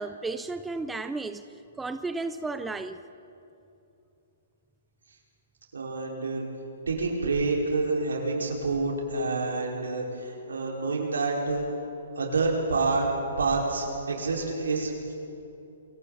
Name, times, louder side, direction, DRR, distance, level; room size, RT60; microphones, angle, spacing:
voice 1, 0.0-1.4 1.8-3.0, right 3 dB, 10° right, 10 dB, 0.7 m, -33 dB
voice 2, 5.7-6.4 6.9-11.7 12.2-13.1 13.4-15.1, right 3 dB, 75° right, -2 dB, 5.7 m, -28 dB
28.5 x 24.0 x 4.4 m, 2.8 s
figure-of-eight pair, 125°, 0 cm